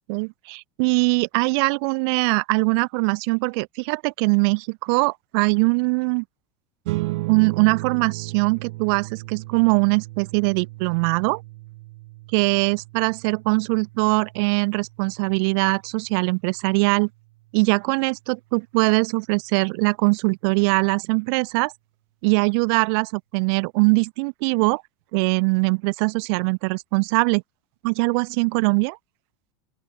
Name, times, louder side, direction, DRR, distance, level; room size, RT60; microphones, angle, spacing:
voice 1, 0.1-6.2 7.3-11.4 12.3-17.1 17.5-21.7 22.2-24.8 25.1-27.4 27.8-29.0, right 33 dB, 55° right, 0.6 m, -22 dB
sound 1, 6.8-17.6, right 21 dB, 70° right, 1.0 m, -36 dB
open air
supercardioid pair, 155°, 15 cm